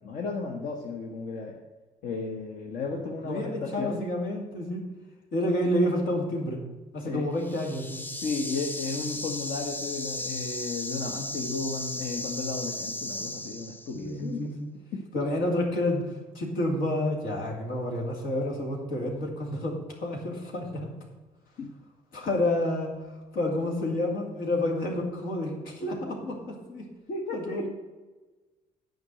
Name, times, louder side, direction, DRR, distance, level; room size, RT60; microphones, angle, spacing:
voice 1, 0.0-1.6 2.0-4.2 7.0-7.2 8.2-14.5 21.6-21.7 27.1-27.7, left 3 dB, 70° left, 0 dB, 1.2 m, -34 dB
voice 2, 3.2-4.9 5.3-6.6 6.9-8.0 13.9-14.7 15.1-20.9 22.1-26.9 27.3-27.7, left 1 dB, 90° left, 0 dB, 2.5 m, -29 dB
sound 1, 7.4-14.1, left 2 dB, 15° left, 0.6 m, -36 dB
9.5 x 5.2 x 7.7 m, 1.2 s
cardioid pair, 105°, 15 cm